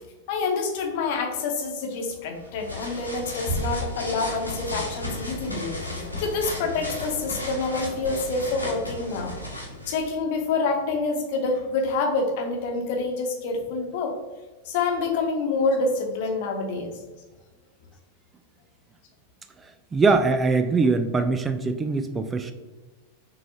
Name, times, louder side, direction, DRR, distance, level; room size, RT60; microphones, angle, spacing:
voice 1, 0.3-5.7 6.2-9.3 9.9-14.1 14.6-16.9, left 3 dB, 50° left, 2 dB, 1.0 m, -27 dB
sound 1, 2.3-10.1, left 1 dB, 90° left, 1.1 m, -34 dB
Bass drum, 3.5-4.9, right 2 dB, 65° right, 1.4 m, -32 dB
voice 2, 19.9-22.5, right 4 dB, 15° right, 8 dB, 0.3 m, -22 dB
6.1 x 3.2 x 2.7 m, 1.2 s
figure-of-eight pair, 90°, 0 cm